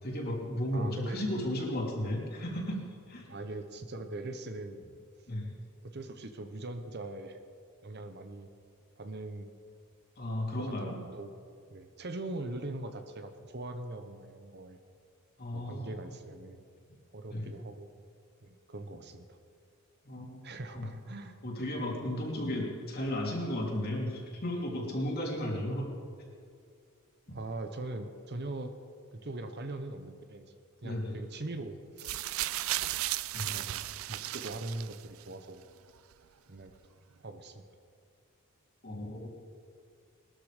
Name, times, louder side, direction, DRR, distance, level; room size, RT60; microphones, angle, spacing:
voice 1, 0.0-2.8 3.1-3.3 5.3-5.5 10.2-11.0 15.4-15.9 17.3-17.5 20.0-20.4 20.7-20.9 21.4-25.9 30.8-31.1 33.3-33.4 38.8-39.3, left 1 dB, 45° left, -1 dB, 3.1 m, -34 dB
voice 2, 0.7-1.3 3.3-4.8 5.8-7.4 7.8-8.5 9.0-9.5 10.6-11.3 11.7-14.8 15.5-16.6 17.1-17.9 18.4-19.4 20.4-21.4 27.3-28.7 29.1-30.5 30.8-32.3 33.5-33.8 34.1-35.6 36.5-36.7 37.2-37.6, right 2 dB, 50° right, 8 dB, 1.0 m, -41 dB
sound 1, 32.0-35.2 36.1-36.2, right 15 dB, 65° right, 0.4 m, -35 dB
21.0 x 13.0 x 5.1 m, 2.3 s
head